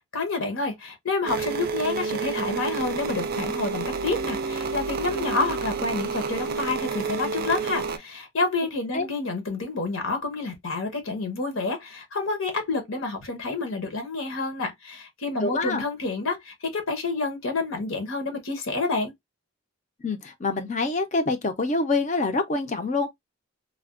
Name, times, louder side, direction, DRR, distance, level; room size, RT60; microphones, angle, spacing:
voice 1, 0.1-19.1, left 3 dB, 70° left, 0.9 m, -29 dB
sound 1, 1.3-8.0, right 5 dB, 45° right, 0.4 m, -29 dB
voice 2, 15.4-15.8 20.0-23.1, left 3 dB, 35° left, 0.5 m, -26 dB
3.3 x 2.2 x 2.4 m
head